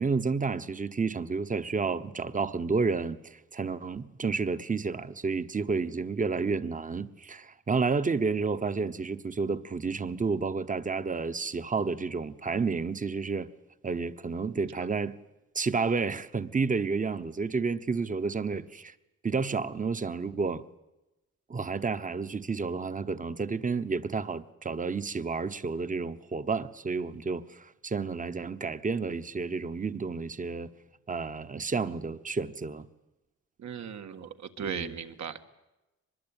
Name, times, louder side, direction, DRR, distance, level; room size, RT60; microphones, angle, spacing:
voice 1, 0.0-13.5 13.8-15.1 15.5-18.9 19.2-20.6 21.5-30.7 31.1-32.9 34.7-34.9, right 4 dB, 25° right, 1.1 m, -30 dB
voice 2, 33.6-35.4, right 7 dB, 70° right, 1.8 m, -37 dB
24.0 x 21.5 x 9.0 m
cardioid pair, 110°, 30 cm